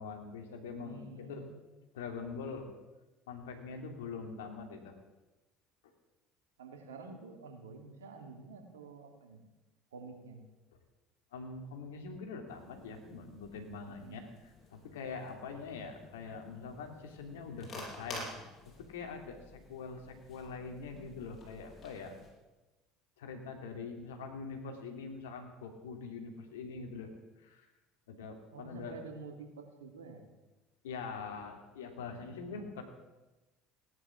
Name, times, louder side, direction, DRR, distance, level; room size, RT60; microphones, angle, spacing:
voice 1, 0.0-1.5 1.9-2.7 3.3-5.0 11.3-18.3 18.6-22.2 23.2-27.1 27.4-27.7 28.1-29.0 30.8-32.8, left 4 dB, 80° left, 5 dB, 2.7 m, -44 dB
voice 2, 0.8-1.5 6.6-9.4 9.9-10.4 13.9-14.3 28.5-30.2, right 3 dB, 85° right, 4 dB, 2.7 m, -49 dB
sound 1, 12.5-22.3, left 2 dB, 40° left, 7.2 m, -51 dB
17.5 x 11.0 x 7.3 m, 1.1 s
hypercardioid pair, 70°, 0 cm